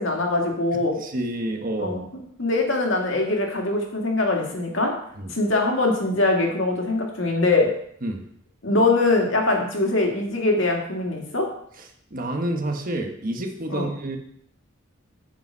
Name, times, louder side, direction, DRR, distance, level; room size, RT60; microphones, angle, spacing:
voice 1, 0.0-1.0 1.8-2.0 2.4-4.9 5.3-7.7 8.6-11.5 13.7-13.9, left 2 dB, 65° left, 1 dB, 2.1 m, -22 dB
voice 2, 1.0-2.0 5.2-5.3 8.0-8.2 12.1-14.2, right 1 dB, 45° right, 3 dB, 1.3 m, -28 dB
8.9 x 5.3 x 6.2 m, 0.67 s
head